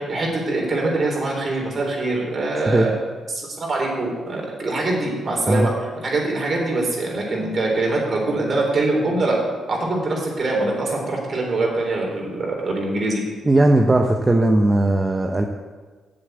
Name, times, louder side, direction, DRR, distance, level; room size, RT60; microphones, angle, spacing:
voice 1, 0.0-2.9 3.6-9.4 9.7-13.2, right 2 dB, 50° right, -1 dB, 3.9 m, -23 dB
voice 2, 13.4-15.5, right 1 dB, 25° right, 3 dB, 0.9 m, -17 dB
7.8 x 7.8 x 8.1 m, 1.4 s
supercardioid pair, 60°, 0 cm